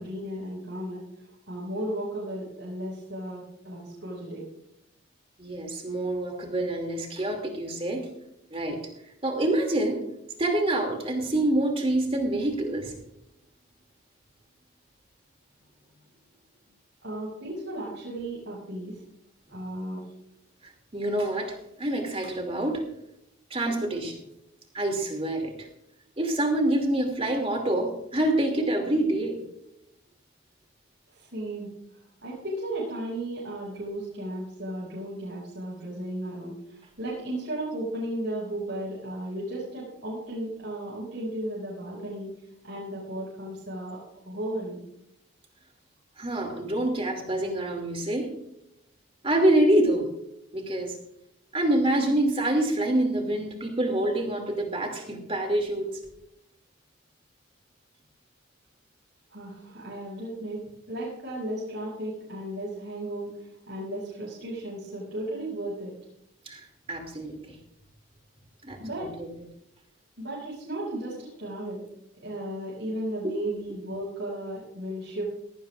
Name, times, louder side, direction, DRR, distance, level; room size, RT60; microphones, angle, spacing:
voice 1, 0.0-4.4 17.0-19.0 19.5-20.0 31.1-31.7 32.2-42.3 42.6-44.0 44.3-44.8 59.3-65.9 68.8-69.1 70.2-71.8 72.2-75.2, right 1 dB, 55° right, -6 dB, 5.8 m, -35 dB
voice 2, 5.4-8.1 8.5-8.8 9.2-10.1 10.4-12.9 20.9-22.9 23.5-24.2 24.7-25.7 26.2-29.4 46.2-48.4 49.2-50.1 50.5-50.9 51.5-55.9 66.5-67.6 68.6-69.3 73.2-73.4, right 1 dB, 25° right, 3 dB, 2.6 m, -26 dB
17.5 x 16.0 x 2.5 m, 0.79 s
head